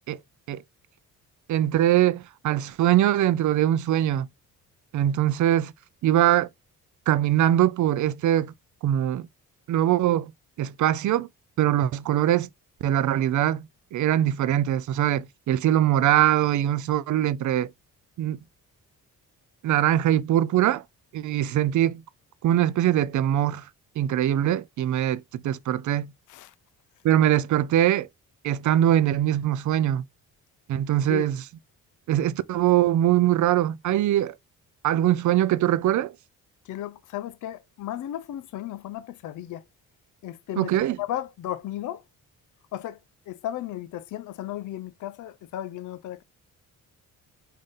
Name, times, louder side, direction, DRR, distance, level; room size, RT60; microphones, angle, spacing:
voice 1, 1.5-4.3 4.9-5.7 6.0-6.5 7.1-8.5 8.8-9.3 9.7-10.3 10.6-11.3 11.6-12.5 12.8-17.7 18.2-18.4 19.6-20.8 21.1-22.0 22.4-23.6 24.0-26.1 27.0-28.1 28.4-30.0 30.7-31.4 32.1-34.3 34.8-36.1 40.6-41.0, right 12 dB, 55° right, 0.4 m, -22 dB
voice 2, 36.7-39.6 40.2-40.7 41.0-42.0 42.7-43.0 43.3-46.2, left 13 dB, 55° left, 0.5 m, -34 dB
3.8 x 2.7 x 3.4 m
supercardioid pair, 65°, 37 cm